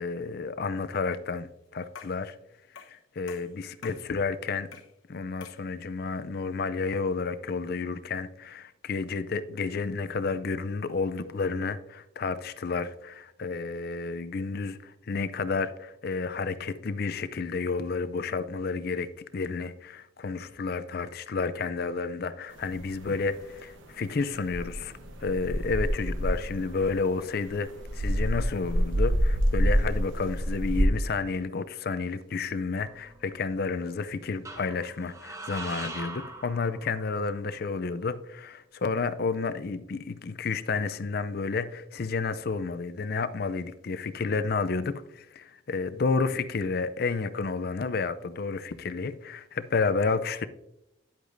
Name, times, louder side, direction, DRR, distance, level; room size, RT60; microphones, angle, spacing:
voice 1, 0.0-2.3 2.9-4.7 5.1-24.9 25.2-50.5, left 4 dB, 50° left, 0.4 m, -31 dB
metal laser, 1.9-2.3 2.8-3.0 3.3-4.1 4.7-5.0 5.4-5.7, left 6 dB, 75° left, 1.1 m, -47 dB
sound 1, 22.6-23.5 23.8-30.9, equal, 70° right, 1.0 m, -27 dB
sound 2, 32.7-33.6 34.4-37.3, right 2 dB, 15° right, 0.8 m, -42 dB
10.5 x 8.0 x 2.6 m
head